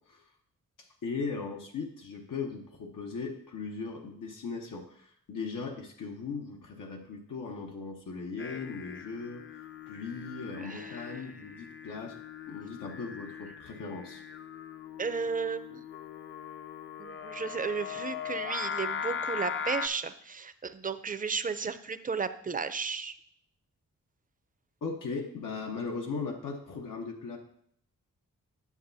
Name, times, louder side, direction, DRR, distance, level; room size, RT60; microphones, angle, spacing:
voice 1, 0.8-9.4 9.9-12.2 12.5-14.2 24.8-27.4, left 4 dB, 90° left, 1 dB, 1.0 m, -38 dB
Singing, 8.4-19.9, left 7 dB, 40° left, 0.4 m, -40 dB
voice 2, 10.6-11.0 15.0-15.8 17.0-23.2, right 5 dB, 25° right, 11 dB, 0.5 m, -34 dB
9.6 x 7.0 x 2.7 m, 0.67 s
wide cardioid pair, 85°, 31 cm